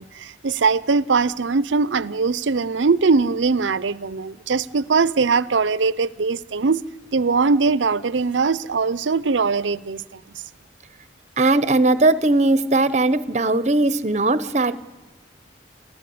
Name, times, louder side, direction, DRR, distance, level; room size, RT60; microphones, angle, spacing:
voice 1, 0.0-6.8 7.1-10.2, right 4 dB, 90° right, 0.6 m, -21 dB
voice 2, 11.4-14.8, right 2 dB, 40° right, 0.9 m, -19 dB
28.5 x 14.5 x 8.6 m
head